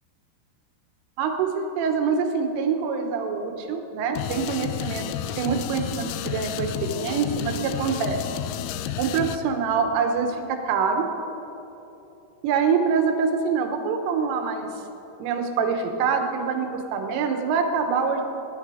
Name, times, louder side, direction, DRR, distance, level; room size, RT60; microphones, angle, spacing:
voice 1, 1.2-5.1 5.4-8.2 9.0-11.1 12.4-14.7 15.2-18.2, right 5 dB, 80° right, 5 dB, 3.7 m, -25 dB
sound 1, 4.2-9.4, left 11 dB, 85° left, 3.1 m, -31 dB
24.0 x 10.5 x 5.0 m, 3.0 s
omnidirectional pair, 5.7 m